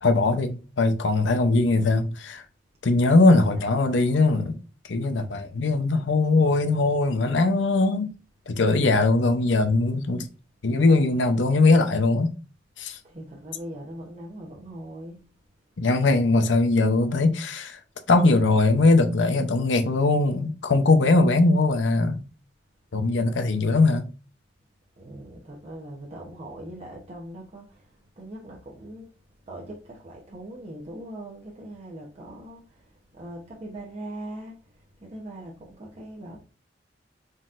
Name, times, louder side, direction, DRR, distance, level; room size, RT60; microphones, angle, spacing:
voice 1, 0.0-2.4 2.8-4.6 4.9-8.1 8.5-10.3 10.6-12.3 12.8-13.0 15.8-17.8 18.1-22.2 22.9-24.1, left 3 dB, 80° left, 0.6 m, -21 dB
voice 2, 13.0-15.2 25.0-27.7 28.2-29.1 29.5-32.7 33.2-34.6 35.0-36.4, right 1 dB, 35° right, 0.9 m, -40 dB
4.1 x 3.9 x 2.5 m
head